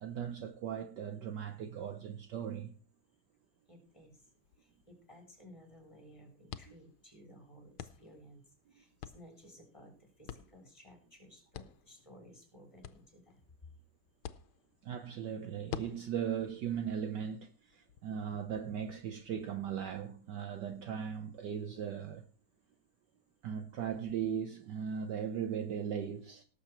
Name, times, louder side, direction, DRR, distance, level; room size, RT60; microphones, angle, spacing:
voice 1, 0.0-2.7 14.8-22.2 23.4-26.4, right 8 dB, 65° right, 1.3 m, -38 dB
voice 2, 3.7-13.7, equal, 15° left, 3.7 m, -57 dB
sound 1, 3.9-18.0, left 10 dB, 85° left, 1.6 m, -51 dB
18.0 x 7.0 x 4.4 m
omnidirectional pair, 2.2 m